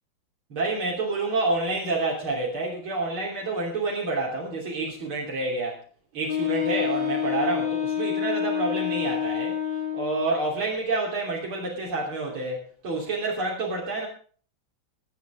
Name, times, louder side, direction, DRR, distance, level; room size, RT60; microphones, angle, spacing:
voice 1, 0.5-5.8 6.1-9.6 9.9-14.1, right 3 dB, 85° right, -2 dB, 4.0 m, -28 dB
Wind instrument woodwind instrument, 6.3-10.4, left 9 dB, 50° left, 5.1 m, -28 dB
21.5 x 8.5 x 5.0 m, 0.44 s
omnidirectional pair, 2.2 m